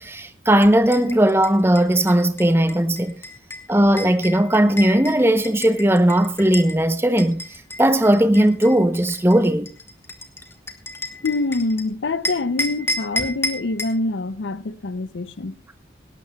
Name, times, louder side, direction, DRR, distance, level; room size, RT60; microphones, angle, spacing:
voice 1, 0.0-3.1 3.7-7.4 7.8-9.7, right 1 dB, 15° right, 0.7 m, -17 dB
sound 1, 0.6-6.8 7.2-11.8 12.2-14.0, left 2 dB, 15° left, 1.4 m, -32 dB
voice 2, 11.2-15.6, left 3 dB, 85° left, 0.6 m, -25 dB
18.5 x 17.5 x 2.3 m
head